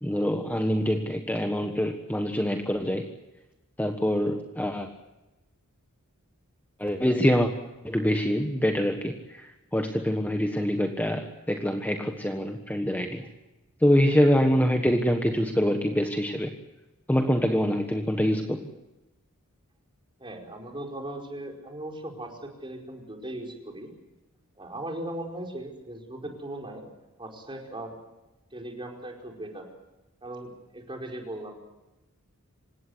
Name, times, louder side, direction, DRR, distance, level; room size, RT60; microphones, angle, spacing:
voice 1, 0.0-3.1 3.8-4.9 6.8-7.5 7.8-13.2 13.8-16.5 17.1-18.7, equal, 10° left, 4 dB, 1.4 m, -25 dB
voice 2, 20.2-23.9 24.5-26.9 27.2-28.0 28.5-29.7 30.2-31.5, right 1 dB, 25° right, 2 dB, 4.9 m, -38 dB
27.0 x 17.0 x 8.1 m, 1.0 s
head